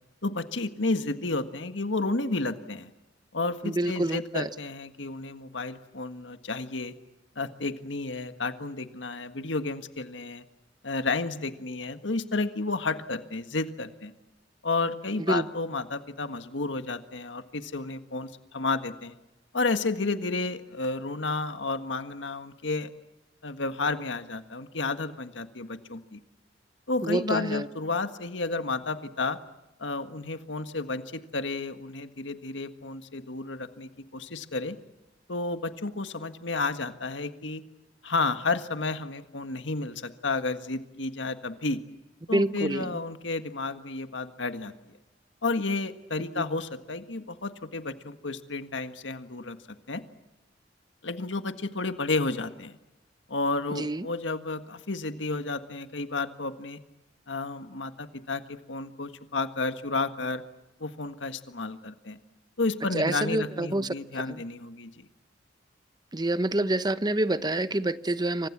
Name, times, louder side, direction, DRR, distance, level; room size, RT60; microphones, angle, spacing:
voice 1, 0.2-2.9 3.3-6.9 7.3-10.4 10.8-14.1 14.6-19.1 19.5-22.9 23.4-26.2 26.9-29.4 29.8-34.8 35.3-37.6 38.0-41.8 42.3-44.9 45.4-49.6 49.9-50.0 51.0-52.7 53.3-56.8 57.3-60.4 60.8-62.2 62.6-65.1, left 3 dB, 80° left, 9 dB, 1.7 m, -31 dB
voice 2, 3.6-4.5 15.3-15.4 27.0-27.7 42.3-43.0 46.4-46.5 53.8-54.1 62.9-63.9 64.3-64.4 66.1-68.5, right 1 dB, 20° right, 13 dB, 1.0 m, -27 dB
28.5 x 25.5 x 7.5 m, 0.97 s
head